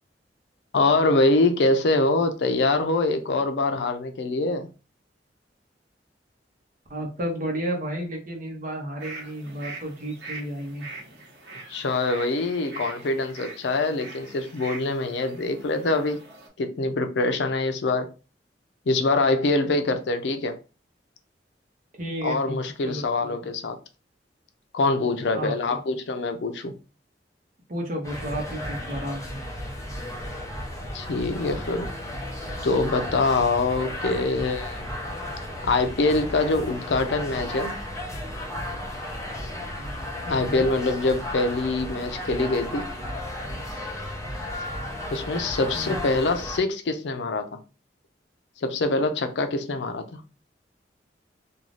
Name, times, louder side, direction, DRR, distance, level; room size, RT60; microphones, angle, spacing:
voice 1, 0.7-4.7 11.7-16.2 16.6-18.1 18.9-20.6 22.2-23.8 24.7-26.7 30.9-31.9 32.6-34.9 35.6-37.8 40.3-42.9 45.1-47.6 48.6-50.2, left 2 dB, 80° left, 0.5 m, -24 dB
voice 2, 6.9-10.9 22.0-22.6 22.8-23.0 25.3-25.8 27.7-29.4 40.3-40.7 45.7-46.1, equal, 50° right, 0.9 m, -32 dB
sound 1, 9.0-16.5, right 3 dB, 80° right, 1.0 m, -42 dB
sound 2, 28.0-46.6, left 1 dB, 20° left, 0.6 m, -34 dB
2.6 x 2.3 x 3.1 m
head